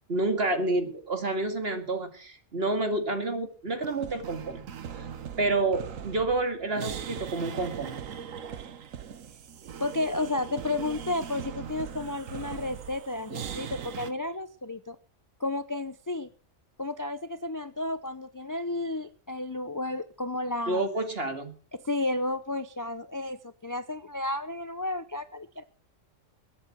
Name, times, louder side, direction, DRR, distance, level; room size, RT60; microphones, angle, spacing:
voice 1, 0.1-4.7 5.4-8.0 20.7-21.5, right 2 dB, 50° right, 7 dB, 2.4 m, -29 dB
sound 1, 3.8-14.1, right 8 dB, 90° right, 1.4 m, -40 dB
voice 2, 9.8-15.0 15.4-16.3 16.8-20.8 21.8-25.6, left 2 dB, 20° left, 13 dB, 0.5 m, -32 dB
21.5 x 8.1 x 6.1 m, 0.40 s
omnidirectional pair, 1.3 m